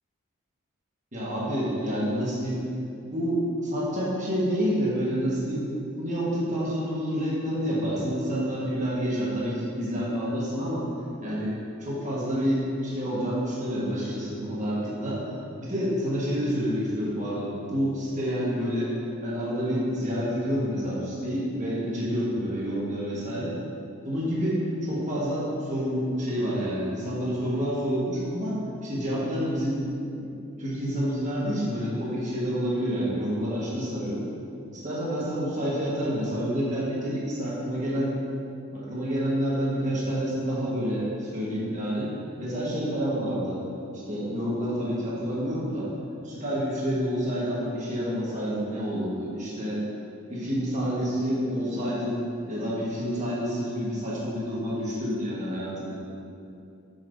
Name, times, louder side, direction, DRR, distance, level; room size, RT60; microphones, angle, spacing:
voice 1, 1.1-2.6 3.1-5.7 6.0-10.8 11.2-15.2 15.6-18.9 19.2-23.5 24.0-29.9 30.6-34.2 34.8-38.2 38.7-42.1 42.4-43.6 43.9-45.9 46.2-49.8 50.3-56.0, equal, 35° right, -7 dB, 1.4 m, -28 dB
7.9 x 5.7 x 2.7 m, 2.5 s
head